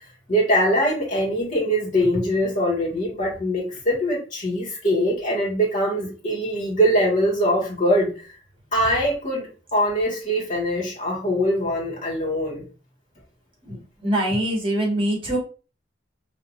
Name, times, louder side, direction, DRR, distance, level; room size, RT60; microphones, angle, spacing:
voice 1, 0.3-8.3 8.7-12.6, equal, 40° left, -3 dB, 1.8 m, -22 dB
voice 2, 13.6-15.4, right 1 dB, 30° right, -1 dB, 1.7 m, -24 dB
4.9 x 2.9 x 2.5 m, 0.34 s
head